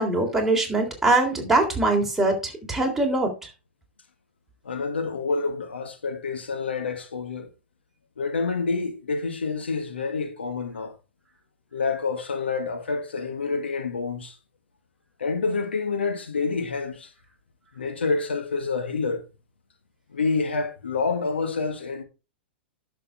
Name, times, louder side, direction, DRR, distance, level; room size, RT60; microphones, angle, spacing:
voice 1, 0.0-3.5, right 2 dB, 5° right, 3.6 m, -23 dB
voice 2, 4.7-7.5 8.2-10.9 11.7-14.4 15.2-17.1 17.8-19.2 20.1-22.0, left 4 dB, 80° left, 1.8 m, -28 dB
11.5 x 6.7 x 3.5 m
hypercardioid pair, 105°, 6 cm